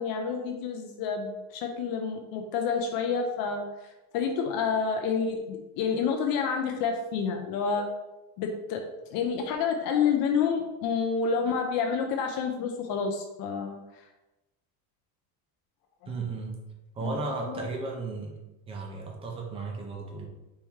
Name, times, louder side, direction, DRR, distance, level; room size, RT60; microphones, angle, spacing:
voice 1, 0.0-3.6 4.1-7.9 8.4-8.8 9.1-13.8 16.0-16.1 17.0-17.1 17.5-17.6, left 6 dB, 50° left, 3 dB, 0.6 m, -29 dB
voice 2, 16.1-16.6 16.9-18.4 18.7-20.3, right 3 dB, 15° right, 1 dB, 0.3 m, -34 dB
4.3 x 2.9 x 3.5 m, 1.0 s
cardioid pair, 155°, 46 cm